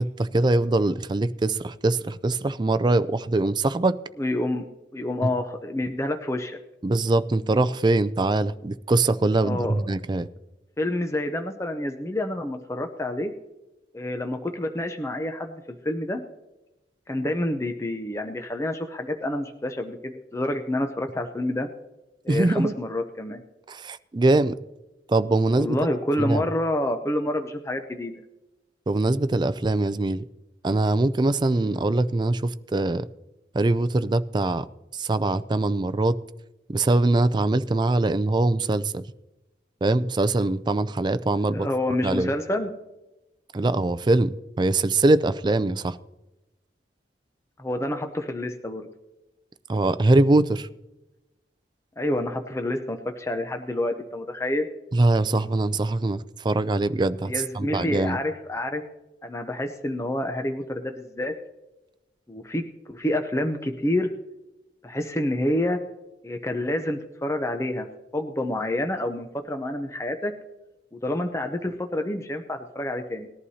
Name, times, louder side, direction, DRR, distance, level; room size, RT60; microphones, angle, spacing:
voice 1, 0.0-4.0 5.2-5.3 6.8-10.3 22.3-22.7 23.7-24.6 25.1-25.8 26.2-26.4 28.9-30.2 30.6-33.0 33.5-34.6 34.9-36.2 36.7-39.0 39.8-41.7 42.0-42.3 43.5-46.0 49.7-50.7 54.9-58.2, right 2 dB, 25° right, 0.4 m, -22 dB
voice 2, 4.2-4.7 4.9-6.6 9.4-9.8 10.8-13.3 13.9-16.2 17.1-21.7 22.2-23.4 25.6-28.2 41.5-42.7 47.6-48.8 52.0-54.7 57.3-58.8 59.2-61.3 62.3-62.6 62.9-64.1 64.8-65.8 66.2-67.9 68.1-70.3 70.9-73.3, left 1 dB, 15° left, 0.6 m, -28 dB
19.5 x 11.5 x 2.8 m
head